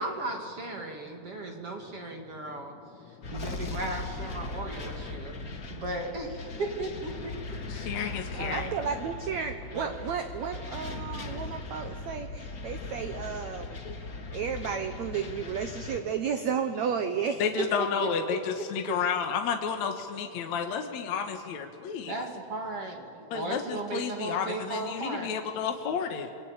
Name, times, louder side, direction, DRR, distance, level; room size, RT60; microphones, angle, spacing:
voice 1, 0.0-2.8 3.3-7.3 7.7-8.1 8.3-8.7 9.7-9.9 17.6-18.1 18.6-19.0 22.1-25.3, right 2 dB, 40° right, 2 dB, 2.8 m, -36 dB
voice 2, 3.0-3.4 5.1-5.7 7.7-8.7 13.8-14.0 14.2-14.3 17.4-22.1 23.3-26.3, left 7 dB, 60° left, 4 dB, 2.2 m, -32 dB
sound 1, 3.2-16.0, left 3 dB, 40° left, 1.2 m, -39 dB
voice 3, 8.5-17.5, right 7 dB, 70° right, 8 dB, 1.7 m, -33 dB
28.5 x 23.0 x 8.9 m, 2.3 s
omnidirectional pair, 4.5 m